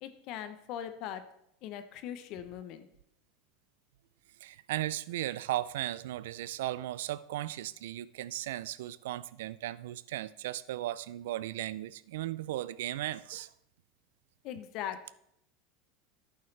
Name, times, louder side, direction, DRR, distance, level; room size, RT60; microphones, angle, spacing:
voice 1, 0.0-1.2 1.6-2.9 14.4-15.1, left 10 dB, 60° left, 0.8 m, -40 dB
voice 2, 4.4-13.5, right 14 dB, 80° right, 0.4 m, -36 dB
11.5 x 8.6 x 3.3 m
hypercardioid pair, 100°, 0 cm